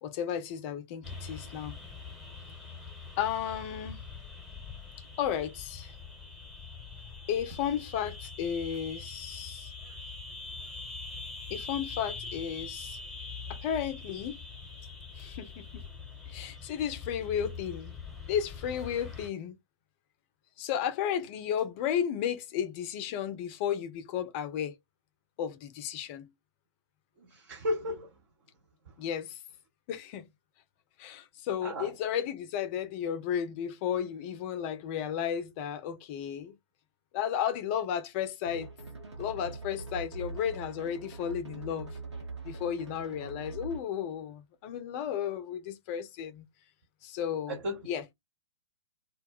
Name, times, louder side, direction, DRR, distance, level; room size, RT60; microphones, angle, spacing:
voice 1, 0.0-1.8 3.2-4.0 5.2-5.9 7.3-9.7 11.5-13.0 13.5-14.4 15.2-15.8 16.3-17.9 18.3-19.6 20.6-24.7 25.4-26.3 29.0-29.4 29.9-30.3 31.0-36.6 37.1-38.7 39.2-42.0 42.4-46.5 47.0-47.6 47.9-48.1, left 9 dB, 25° left, 0.4 m, -33 dB
sound 1, 1.0-19.3, left 4 dB, ahead, 1.0 m, -43 dB
voice 2, 27.2-28.1 31.6-31.9 47.5-47.8, left 1 dB, 45° right, 0.7 m, -34 dB
sound 2, 38.5-44.0, right 3 dB, 75° right, 1.0 m, -43 dB
2.2 x 2.0 x 3.6 m
figure-of-eight pair, 115°, 15 cm